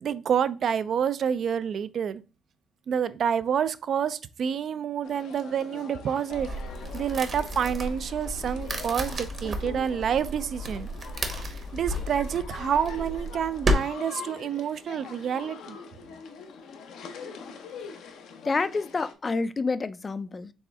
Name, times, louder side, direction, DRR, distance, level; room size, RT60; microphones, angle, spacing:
voice 1, 0.0-2.2 2.9-6.5 6.9-10.9 11.3-15.8, right 8 dB, 60° right, 0.4 m, -28 dB
sound 1, 5.0-19.1, left 6 dB, 80° left, 0.6 m, -44 dB
sound 2, 6.3-13.8, equal, 40° right, 1.0 m, -32 dB
voice 2, 18.4-20.5, left 4 dB, 30° left, 0.3 m, -28 dB
4.2 x 3.3 x 3.4 m
cardioid pair, 90°, 0 cm